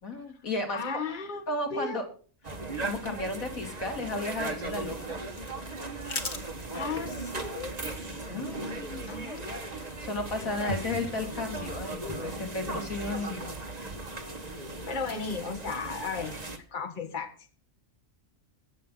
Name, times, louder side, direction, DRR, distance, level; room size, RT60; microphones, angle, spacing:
voice 1, 0.0-0.8 1.5-2.0 2.8-5.2 8.3-9.1 9.7-13.6, left 2 dB, 85° left, 3 dB, 3.0 m, -34 dB
voice 2, 0.7-1.4 1.7-2.0 6.7-7.8 9.1-9.7 14.9-17.3, left 4 dB, 35° left, 6 dB, 1.7 m, -35 dB
sound 1, 2.4-16.6, right 2 dB, 30° right, 1.6 m, -37 dB
sound 2, 5.0-11.6, left 4 dB, 55° left, 1.9 m, -44 dB
22.5 x 7.9 x 3.9 m, 0.39 s
omnidirectional pair, 1.4 m